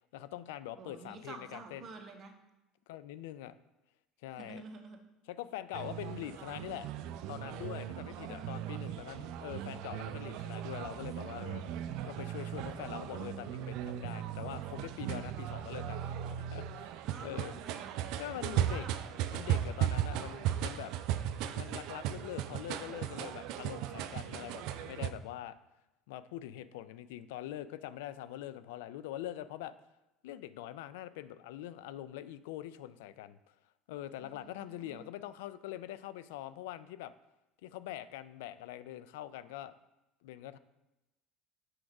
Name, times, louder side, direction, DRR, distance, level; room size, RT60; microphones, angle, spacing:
voice 1, 0.1-1.9 2.9-3.6 4.2-4.6 5.3-6.9 7.3-11.6 12.0-16.9 17.2-17.5 18.2-18.8 19.3-20.9 21.5-25.6 26.1-29.7 30.2-33.4 33.9-37.1 37.6-39.8 40.2-40.6, left 13 dB, 85° left, 14 dB, 0.3 m, -43 dB
voice 2, 0.8-2.3 4.3-5.0 7.9-8.7 17.0-18.0 18.5-18.9 20.1-20.6 34.2-35.1, right 4 dB, 40° right, 3 dB, 1.1 m, -50 dB
sound 1, 5.7-25.1, right 11 dB, 70° right, 0.4 m, -37 dB
6.3 x 4.6 x 4.8 m, 1.0 s
supercardioid pair, 105°, 0 cm